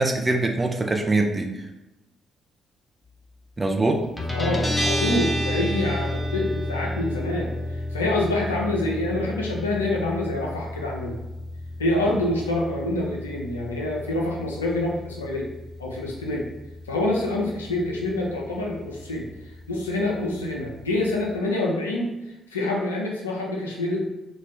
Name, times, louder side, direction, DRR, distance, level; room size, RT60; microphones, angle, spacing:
voice 1, 0.0-1.5 3.6-4.0 12.1-12.2, right 2 dB, 25° right, 3 dB, 0.5 m, -23 dB
Guitar, 4.2-21.4, left 1 dB, 15° left, 0.8 m, -32 dB
voice 2, 4.3-11.2 11.8-15.5 15.8-16.5 16.9-19.2 19.7-22.1 22.5-24.0, left 2 dB, 85° left, -2 dB, 0.4 m, -26 dB
2.5 x 2.3 x 3.3 m, 0.98 s
figure-of-eight pair, 45°, 0 cm